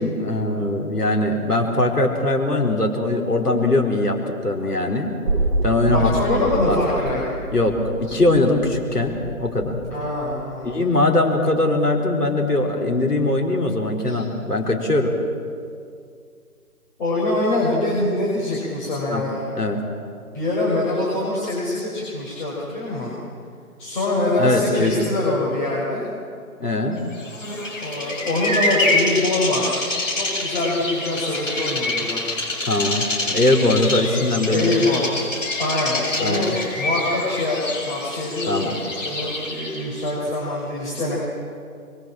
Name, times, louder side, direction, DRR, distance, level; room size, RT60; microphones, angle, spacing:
voice 1, 0.0-5.1 5.6-6.1 6.7-6.8 7.5-9.8 10.6-15.1 19.1-19.2 19.5-19.8 24.4-25.1 26.6-27.0 32.7-33.0 33.3-34.8 36.2-36.6 38.5-38.8, left 2 dB, 80° left, 1 dB, 4.6 m, -21 dB
sound 1, 5.2-11.2 11.5-11.6, right 2 dB, 25° right, 1.9 m, -28 dB
voice 2, 5.8-7.2 9.9-10.9 14.1-14.2 17.0-19.5 20.3-23.1 23.8-26.1 27.8-29.8 30.1-32.2 34.5-35.1 35.6-36.5 36.8-37.6 37.9-38.7 39.0-41.2, left 2 dB, 30° left, -7 dB, 5.9 m, -24 dB
Bird vocalization bird call bird song, 27.2-39.9, left 2 dB, 55° left, 7.5 m, -26 dB
27.0 x 23.5 x 7.5 m, 2.3 s
figure-of-eight pair, 150°, 46 cm